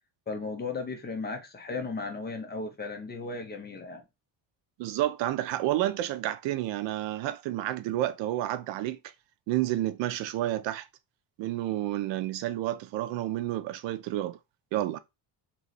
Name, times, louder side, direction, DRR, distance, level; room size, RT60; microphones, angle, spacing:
voice 1, 0.3-4.0, left 3 dB, 20° left, 0.7 m, -35 dB
voice 2, 4.8-9.0 9.5-10.9 11.4-14.4 14.7-15.0, right 14 dB, 75° right, 0.6 m, -30 dB
3.2 x 3.0 x 3.9 m
cardioid pair, 170°, 44 cm